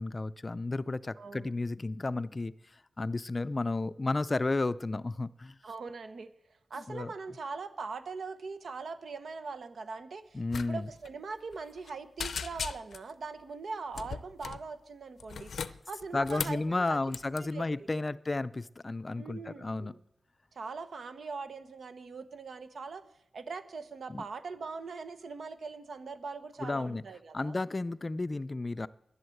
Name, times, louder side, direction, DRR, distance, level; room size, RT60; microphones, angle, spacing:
voice 1, 0.0-5.6 6.8-7.1 10.3-10.9 16.1-19.9 24.1-24.3 26.6-27.0 27.3-28.9, left 2 dB, 30° left, 15 dB, 0.4 m, -33 dB
voice 2, 1.2-1.5 5.6-6.3 6.7-17.0 17.5-17.6 19.2-20.0 20.5-23.0 23.3-27.6, right 4 dB, 75° right, 10 dB, 1.1 m, -41 dB
sound 1, 10.5-10.7 10.9-11.1 11.5-11.9 12.2-13.1 13.9-14.6 15.2-16.6 17.1-17.4, left 6 dB, 80° left, 0.5 m, -38 dB
11.0 x 11.0 x 7.8 m, 0.78 s
wide cardioid pair, 100°, 0 cm